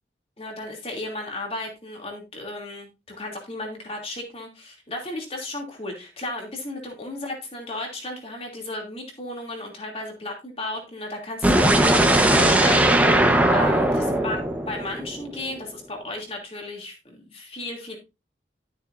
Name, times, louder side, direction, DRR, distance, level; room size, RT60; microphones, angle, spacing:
voice 1, 0.4-13.1 13.5-14.4 14.7-18.0, left 2 dB, 30° left, 1 dB, 2.8 m, -34 dB
sound 1, 11.4-15.4, right 1 dB, 10° right, 1.1 m, -19 dB
12.5 x 7.2 x 2.6 m, 0.27 s
head